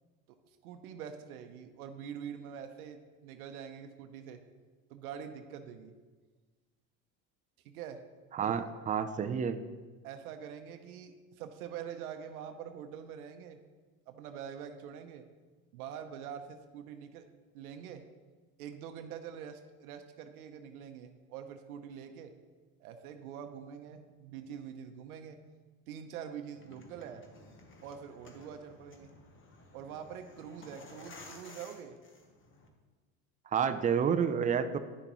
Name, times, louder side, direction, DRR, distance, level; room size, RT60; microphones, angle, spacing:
voice 1, 0.6-4.4 4.9-5.9 7.6-8.0 8.4-8.7 10.0-13.6 14.1-15.3 15.7-17.3 17.5-18.0 18.6-22.3 22.8-25.4 25.9-27.2 27.8-29.1 29.7-32.0, right 8 dB, 85° right, 7 dB, 0.8 m, -45 dB
voice 2, 8.3-9.6 33.5-34.8, right 7 dB, 20° right, 10 dB, 0.4 m, -29 dB
sound 1, 26.5-32.7, left 2 dB, 30° left, 1.1 m, -54 dB
9.7 x 6.6 x 3.0 m, 1.4 s
hypercardioid pair, 90°, 43 cm